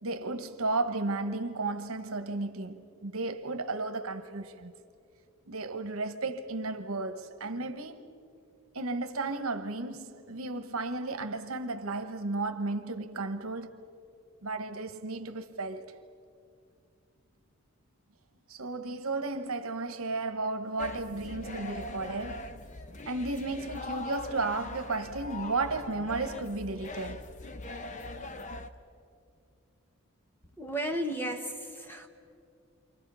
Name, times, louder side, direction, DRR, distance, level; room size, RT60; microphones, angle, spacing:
voice 1, 0.0-4.7 5.5-8.1 8.7-13.8 14.4-15.9 18.5-22.6 23.1-27.3, right 3 dB, 75° right, 1.2 m, -34 dB
sound 1, 20.8-28.7, left 2 dB, 35° left, 0.8 m, -41 dB
voice 2, 30.6-32.1, right 1 dB, 10° left, 1.3 m, -34 dB
29.0 x 25.5 x 5.6 m
head